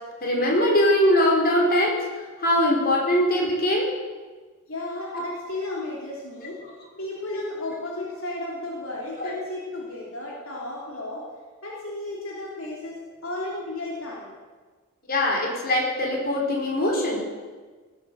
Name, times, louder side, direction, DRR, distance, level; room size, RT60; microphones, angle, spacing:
voice 1, 0.2-1.9 2.4-3.9 5.1-5.2 7.3-7.4 9.2-9.3 10.3-10.4 15.1-17.2, left 1 dB, 45° left, -1 dB, 4.3 m, -22 dB
voice 2, 4.7-6.6 6.9-11.2 11.6-14.4, left 2 dB, 65° left, -4 dB, 3.4 m, -34 dB
18.5 x 9.5 x 8.1 m, 1.4 s
head